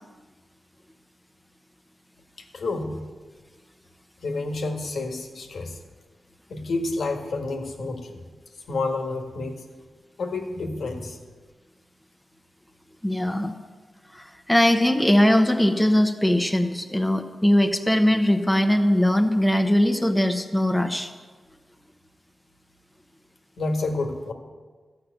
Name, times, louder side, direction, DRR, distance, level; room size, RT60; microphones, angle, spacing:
voice 1, 2.5-3.0 4.2-5.8 6.5-8.2 8.7-9.6 10.2-11.2 23.6-24.3, left 3 dB, 80° left, 4 dB, 1.5 m, -29 dB
voice 2, 13.0-13.5 14.1-21.1, left 1 dB, 5° left, 5 dB, 1.0 m, -20 dB
13.5 x 5.8 x 9.1 m, 1.4 s
cardioid pair, 70°, 0 cm